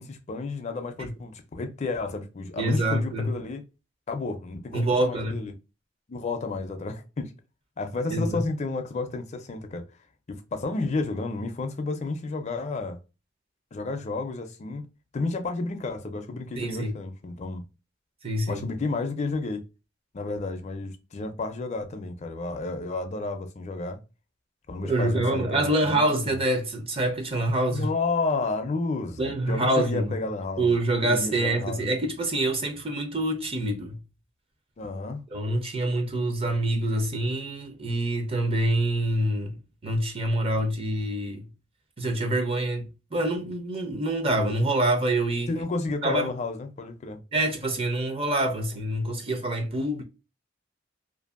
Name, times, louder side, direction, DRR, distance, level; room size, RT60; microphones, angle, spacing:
voice 1, 0.0-3.6 4.1-5.5 6.1-7.3 7.8-9.8 10.3-13.0 13.7-14.8 15.1-17.7 18.5-19.6 20.1-24.0 24.7-26.4 27.7-30.7 31.0-31.9 34.8-35.2 45.5-47.2, left 3 dB, 35° left, 0.4 m, -31 dB
voice 2, 2.6-3.3 4.7-5.4 8.1-8.4 16.6-16.9 18.2-18.6 24.8-27.9 29.2-30.1 30.6-34.0 35.3-39.6 39.8-41.4 42.0-45.5 46.0-46.3 47.3-50.0, right 1 dB, 30° right, 0.5 m, -26 dB
2.6 x 2.5 x 2.4 m
head